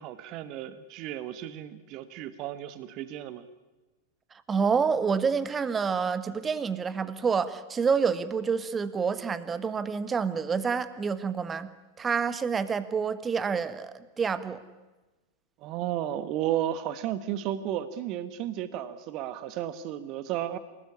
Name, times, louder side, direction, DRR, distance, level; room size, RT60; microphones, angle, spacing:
voice 1, 0.0-3.4 15.6-20.6, right 11 dB, 40° right, 13 dB, 1.4 m, -33 dB
voice 2, 4.5-14.6, right 6 dB, 20° right, 14 dB, 1.6 m, -28 dB
28.0 x 18.5 x 9.9 m, 1.2 s
figure-of-eight pair, 90°, 0 cm